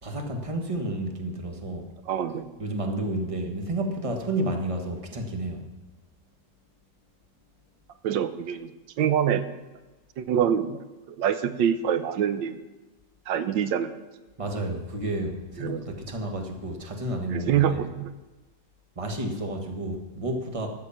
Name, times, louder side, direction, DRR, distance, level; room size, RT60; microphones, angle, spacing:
voice 1, 0.0-1.9 2.6-5.7 14.4-17.8 18.9-20.7, right 1 dB, 20° right, 3 dB, 1.4 m, -31 dB
voice 2, 2.1-2.5 8.0-8.7 9.0-9.5 10.2-10.8 11.1-12.6 13.3-14.0 15.6-15.8 17.3-18.1, right 9 dB, 85° right, 11 dB, 1.4 m, -25 dB
13.0 x 6.7 x 7.2 m, 1.2 s
omnidirectional pair, 2.0 m